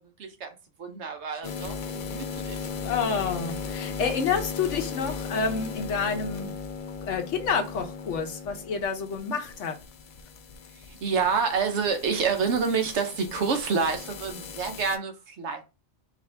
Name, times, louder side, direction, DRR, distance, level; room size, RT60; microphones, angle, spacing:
voice 1, 0.2-2.6 10.9-15.6, right 5 dB, 75° right, 1.1 m, -28 dB
sound 1, 1.4-15.0, left 5 dB, 55° left, 0.6 m, -37 dB
voice 2, 2.8-6.5 7.0-9.8, left 5 dB, 90° left, 1.2 m, -29 dB
4.8 x 2.7 x 3.3 m
omnidirectional pair, 1.2 m